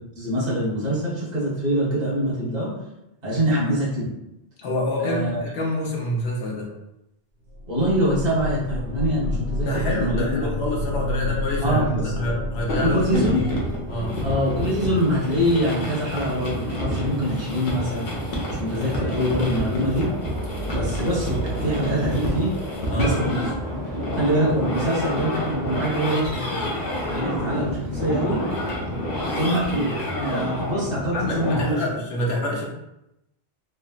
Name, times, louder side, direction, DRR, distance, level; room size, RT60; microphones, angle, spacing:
voice 1, 0.1-2.7 3.2-4.1 5.0-5.4 7.7-10.5 11.6-12.0 12.8-13.4 14.2-18.1 18.6-20.1 20.7-22.5 22.9-23.5 24.1-26.3 27.1-28.4 29.4-29.9 30.3-31.8, equal, 45° right, -8 dB, 1.2 m, -24 dB
voice 2, 4.6-6.7 9.6-13.1 13.3-13.5 13.9-14.2 20.5-20.6 21.0-21.1 22.9-23.2 31.1-32.6, left 1 dB, 80° left, -3 dB, 1.0 m, -27 dB
sound 1, 7.5-15.8 19.8-22.1, left 1 dB, 15° left, 0.7 m, -30 dB
sound 2, 12.7-31.6, equal, 55° left, 0.8 m, -29 dB
sound 3, 13.9-29.4, equal, 90° right, 1.2 m, -35 dB
3.6 x 2.0 x 2.3 m, 0.87 s
omnidirectional pair, 1.1 m